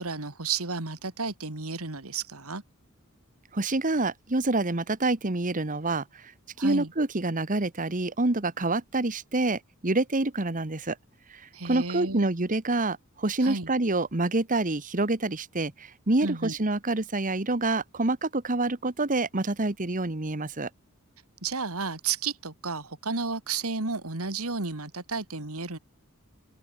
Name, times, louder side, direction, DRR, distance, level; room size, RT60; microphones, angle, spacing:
voice 1, 0.0-2.6 6.6-6.9 11.5-12.3 13.4-13.7 16.2-16.6 21.4-25.8, right 4 dB, 75° right, 2.6 m, -32 dB
voice 2, 3.5-6.0 6.6-11.0 11.6-20.7, right 2 dB, 35° right, 1.4 m, -27 dB
open air
head